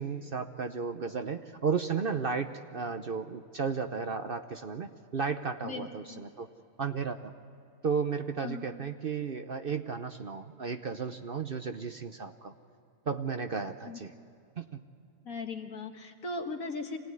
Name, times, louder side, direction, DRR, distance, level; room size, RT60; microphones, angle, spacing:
voice 1, 0.0-6.5 6.8-7.3 7.8-12.5 13.1-14.1 14.6-14.8, right 5 dB, 50° right, 7 dB, 0.8 m, -34 dB
voice 2, 5.6-6.2 8.4-8.6 13.8-14.0 15.2-17.0, left 3 dB, 70° left, 4 dB, 2.1 m, -38 dB
25.0 x 18.0 x 9.7 m, 2.7 s
omnidirectional pair, 1.5 m